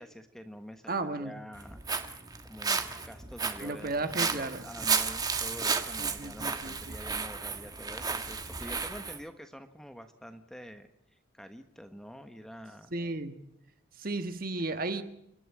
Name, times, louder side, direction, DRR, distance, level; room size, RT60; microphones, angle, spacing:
voice 1, 0.0-1.8 2.4-12.9, equal, ahead, 8 dB, 1.2 m, -47 dB
voice 2, 0.9-1.4 3.6-4.6 6.0-7.0 12.9-13.4 14.0-15.0, right 2 dB, 45° right, 9 dB, 1.6 m, -34 dB
Walk footsteps, 1.5-9.2, right 5 dB, 20° right, 1.4 m, -33 dB
29.0 x 12.0 x 9.9 m, 0.77 s
head